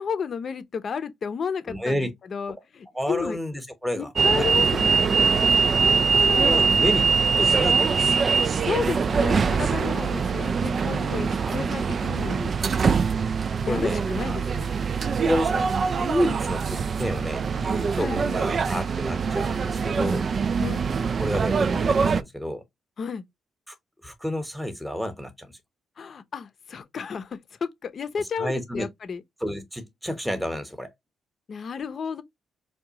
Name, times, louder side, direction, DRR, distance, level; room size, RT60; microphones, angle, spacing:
voice 1, 0.0-3.4 4.0-5.1 5.7-6.7 8.6-12.5 13.7-14.8 18.0-18.2 20.6-20.8 23.0-23.2 26.0-29.2 31.5-32.2, left 6 dB, 55° left, 0.6 m, -32 dB
voice 2, 1.7-2.1 2.9-4.5 6.3-7.1 7.4-8.8 11.4-11.6 13.6-14.5 15.2-20.3 21.2-22.6 23.7-23.8 24.0-25.5 28.4-28.9 29.4-30.9, equal, 5° right, 0.9 m, -30 dB
sound 1, 4.2-22.2, right 5 dB, 50° right, 0.3 m, -23 dB
4.7 x 2.3 x 2.8 m
cardioid pair, 70°, 0 cm